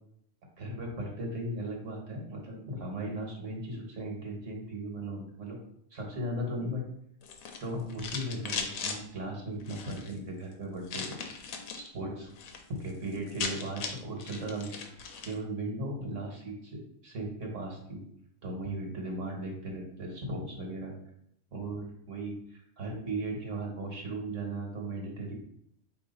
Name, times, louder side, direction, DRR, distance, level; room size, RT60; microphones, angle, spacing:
voice 1, 0.6-5.6 5.9-6.8 7.6-11.5 11.7-12.3 12.8-18.0 18.4-20.9 21.5-25.3, right 1 dB, 65° right, 0 dB, 1.4 m, -37 dB
sound 1, 7.2-9.0 9.6-10.1 10.9-11.9 12.2-12.6 12.9-13.0 13.2-15.4, left 5 dB, 80° left, 1.1 m, -38 dB
4.6 x 2.8 x 3.9 m, 0.73 s
omnidirectional pair, 1.4 m